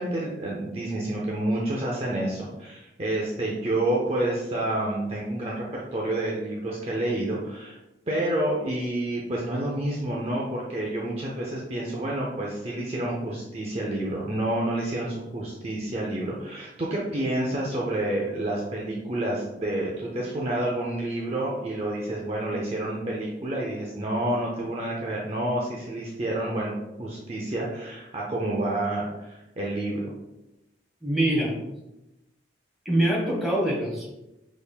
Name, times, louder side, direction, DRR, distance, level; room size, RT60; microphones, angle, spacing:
voice 1, 0.0-7.8 8.1-26.7 27.0-30.1, right 1 dB, 30° right, -3 dB, 0.6 m, -29 dB
voice 2, 31.0-31.6 32.8-34.1, right 1 dB, ahead, -5 dB, 1.6 m, -24 dB
6.2 x 3.5 x 2.4 m, 0.93 s
head